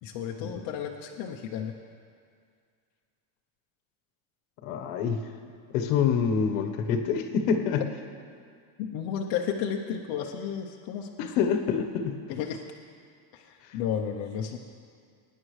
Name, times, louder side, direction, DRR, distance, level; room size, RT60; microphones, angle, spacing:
voice 1, 0.0-1.7 8.8-11.3 12.3-12.6 13.3-14.6, left 8 dB, 45° left, 0 dB, 0.7 m, -33 dB
voice 2, 4.6-5.2 5.7-7.8 11.2-12.2, left 6 dB, 65° left, 6 dB, 1.2 m, -26 dB
23.0 x 9.9 x 3.2 m, 2.2 s
cardioid pair, 175°, 49 cm